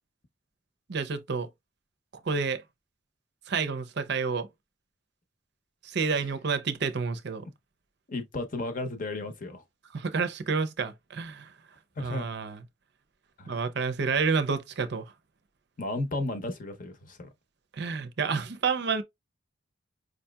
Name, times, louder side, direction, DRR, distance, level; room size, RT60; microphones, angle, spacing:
voice 1, 0.9-1.5 2.1-2.6 3.5-4.5 5.8-7.4 9.9-11.5 12.0-12.6 13.5-15.1 17.7-19.0, right 5 dB, 60° right, 0.5 m, -29 dB
voice 2, 8.1-9.6 12.0-12.2 13.4-13.6 15.8-17.3, left 2 dB, 45° left, 0.7 m, -34 dB
4.9 x 2.7 x 2.2 m
head